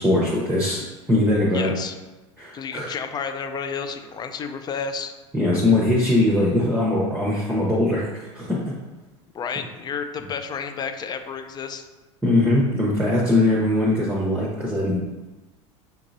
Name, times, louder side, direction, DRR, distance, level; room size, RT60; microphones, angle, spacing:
voice 1, 0.0-1.7 2.4-2.9 5.3-8.6 12.2-15.0, left 2 dB, 10° right, -5 dB, 0.8 m, -21 dB
voice 2, 1.5-2.0 2.5-5.1 9.3-11.9, left 6 dB, 25° left, 7 dB, 0.4 m, -31 dB
5.5 x 2.9 x 2.6 m, 1.1 s
hypercardioid pair, 90°, 16 cm